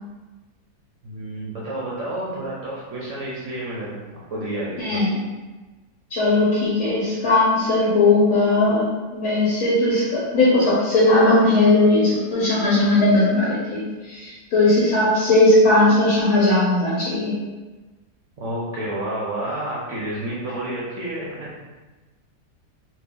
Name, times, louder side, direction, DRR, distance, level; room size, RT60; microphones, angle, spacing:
voice 1, 1.0-5.1 18.4-21.5, right 1 dB, 60° right, -6 dB, 0.8 m, -30 dB
voice 2, 4.8-5.2 6.1-17.3, left 2 dB, 65° left, -7 dB, 1.1 m, -18 dB
2.7 x 2.5 x 3.5 m, 1.2 s
omnidirectional pair, 1.8 m